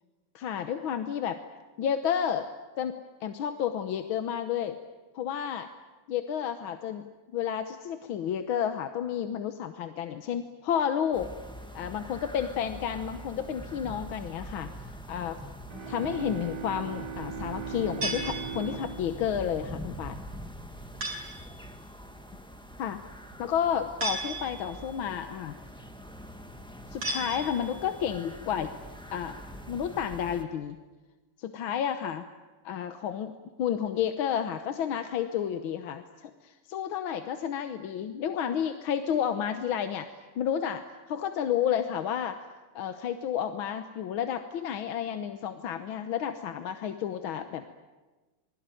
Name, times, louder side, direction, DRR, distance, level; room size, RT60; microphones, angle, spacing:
voice 1, 0.4-1.4 1.8-2.5 2.8-4.8 5.2-5.7 6.1-7.0 7.3-11.3 11.7-14.7 15.1-15.4 15.9-20.2 22.8-23.0 23.4-25.6 26.9-28.7 29.1-29.4 29.7-30.8 31.4-32.2 32.7-33.3 33.6-40.1 40.4-42.4 42.8-47.7, left 9 dB, 85° left, 8 dB, 1.8 m, -31 dB
sound 1, 11.1-30.4, equal, 5° left, 1.5 m, -44 dB
sound 2, 15.7-20.4, right 6 dB, 60° right, 3.2 m, -40 dB
sound 3, 18.0-19.0 21.0-21.5 24.0-24.8 27.0-27.9, right 2 dB, 80° right, 5.2 m, -35 dB
27.5 x 21.0 x 9.1 m, 1.2 s
omnidirectional pair, 2.2 m